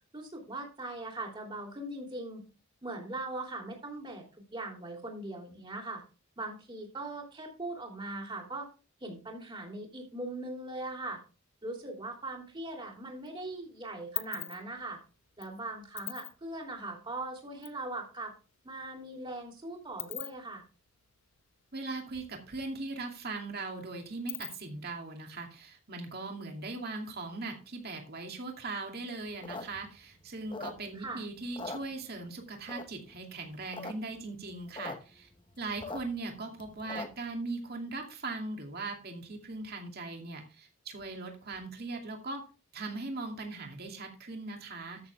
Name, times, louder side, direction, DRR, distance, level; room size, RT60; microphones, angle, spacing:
voice 1, 0.1-2.4 2.8-4.2 4.5-6.0 6.4-8.7 9.0-11.2 11.6-15.0 15.4-18.3 18.6-20.6 30.9-31.2, right 2 dB, 20° right, 1 dB, 3.0 m, -40 dB
sound 1, 12.5-13.3 13.6-17.8 18.1-18.2 18.4-22.3 22.5-22.6 23.0-24.9, left 17 dB, 70° left, 0.8 m, -43 dB
voice 2, 21.7-35.3 35.6-42.4 42.7-45.0, right 3 dB, 45° right, 3 dB, 2.5 m, -39 dB
sound 2, 29.3-31.1 31.4-32.3 32.7-33.1 33.5-33.9 34.2-34.3 34.4-35.0 35.3-37.3, left 3 dB, 20° left, 0.9 m, -41 dB
13.5 x 7.0 x 3.5 m, 0.33 s
head